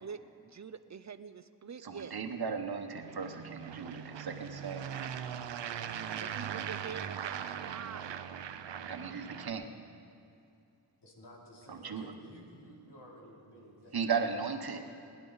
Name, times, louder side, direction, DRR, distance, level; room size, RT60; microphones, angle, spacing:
voice 1, 0.0-2.1 6.2-8.4, right 6 dB, 45° right, 12 dB, 0.5 m, -46 dB
voice 2, 1.8-5.1 8.9-9.7 11.7-12.1 13.9-14.8, right 5 dB, 60° right, 6 dB, 1.1 m, -36 dB
sound 1, 2.9-9.5, right 8 dB, 90° right, 0.6 m, -40 dB
voice 3, 11.0-14.0 14.7-14.8, equal, 75° left, -3 dB, 3.0 m, -53 dB
21.0 x 11.0 x 4.0 m, 2.6 s
wide cardioid pair, 80°, 42 cm